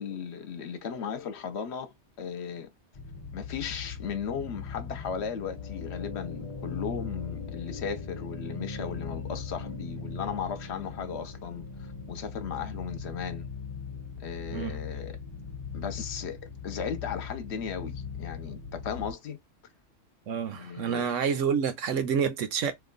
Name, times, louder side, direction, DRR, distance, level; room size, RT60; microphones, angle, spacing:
voice 1, 0.0-2.7 3.3-13.5 14.2-15.2 15.7-19.4 20.5-21.1, left 7 dB, 65° left, 0.9 m, -36 dB
sound 1, 2.9-19.1, left 5 dB, 35° left, 0.6 m, -39 dB
voice 2, 20.3-22.7, right 7 dB, 85° right, 1.1 m, -28 dB
2.9 x 2.2 x 3.8 m
omnidirectional pair, 1.3 m